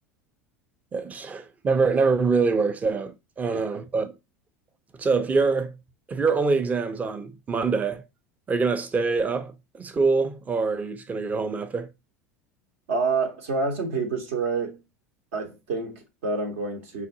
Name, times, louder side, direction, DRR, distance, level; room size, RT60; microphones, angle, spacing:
voice 1, 0.9-4.1 5.0-5.8 6.1-8.0 8.5-11.9, right 4 dB, 20° right, 0.5 m, -25 dB
voice 2, 12.9-14.8 15.3-17.1, right 4 dB, 65° right, 0.8 m, -28 dB
5.6 x 2.3 x 2.6 m
figure-of-eight pair, 75°, 8 cm